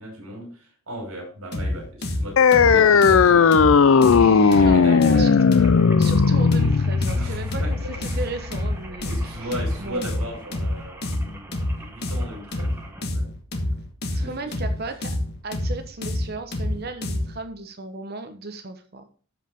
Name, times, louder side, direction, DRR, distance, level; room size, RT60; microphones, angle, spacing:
voice 1, 0.0-3.7 4.5-5.7 7.1-8.2 9.1-11.5 11.8-13.3 14.1-14.5, equal, 80° right, 1 dB, 5.5 m, -36 dB
sound 1, 1.5-17.4, left 1 dB, 50° left, 1.4 m, -28 dB
sound 2, 2.4-9.4, left 5 dB, 70° left, 0.4 m, -17 dB
voice 2, 4.0-5.3 6.0-9.4 9.8-10.0 11.1-11.2 14.1-15.1 15.4-19.1, right 3 dB, 45° right, 8 dB, 1.0 m, -35 dB
sound 3, 4.4-13.0, right 1 dB, 10° right, 1.6 m, -44 dB
13.0 x 5.4 x 3.6 m, 0.40 s
head